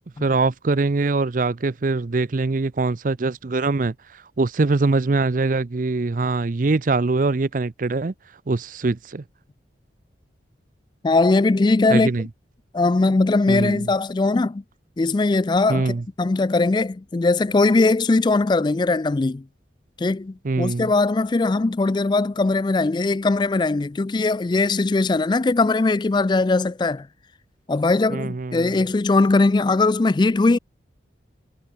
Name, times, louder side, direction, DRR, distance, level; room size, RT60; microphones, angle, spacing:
voice 1, 0.2-3.9 4.4-8.1 8.5-9.2 11.9-12.3 13.5-13.9 15.7-16.0 20.4-20.9 28.1-28.8, right 3 dB, 45° right, 0.5 m, -23 dB
voice 2, 11.0-12.1 12.7-14.6 15.0-19.4 20.0-27.1 27.7-30.6, left 3 dB, 25° left, 0.3 m, -20 dB
head